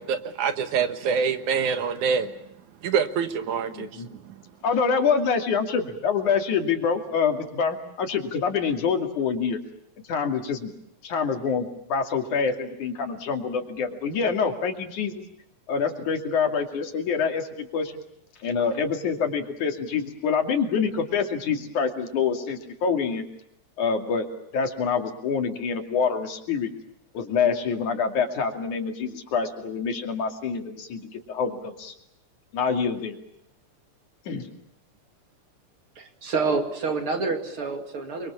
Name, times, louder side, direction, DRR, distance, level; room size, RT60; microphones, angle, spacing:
voice 1, 0.0-2.3 2.8-4.4, right 6 dB, 80° right, 10 dB, 2.9 m, -26 dB
voice 2, 3.7-4.1 4.6-9.6 10.1-10.7 11.0-15.2 15.7-17.9 18.4-23.2 23.8-24.3 24.5-26.7 27.1-31.9 32.5-33.2 34.3-34.5, left 6 dB, 80° left, 5 dB, 4.0 m, -26 dB
voice 3, 36.0-38.3, right 4 dB, 45° right, 5 dB, 3.1 m, -28 dB
29.5 x 23.5 x 7.2 m, 0.76 s
omnidirectional pair, 3.5 m